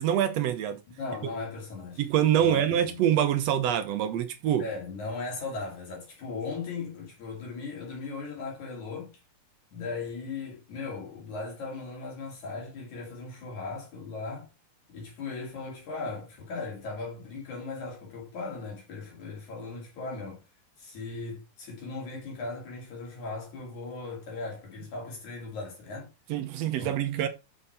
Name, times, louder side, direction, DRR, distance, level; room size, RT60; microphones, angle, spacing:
voice 1, 0.0-0.8 2.0-4.6 26.3-27.3, right 10 dB, 75° right, 1.6 m, -25 dB
voice 2, 0.9-2.1 2.4-3.0 4.6-9.1 9.7-14.5 14.9-20.4 20.8-26.1 26.8-26.9, left 3 dB, 65° left, 3.8 m, -38 dB
7.7 x 6.5 x 4.3 m
omnidirectional pair, 3.7 m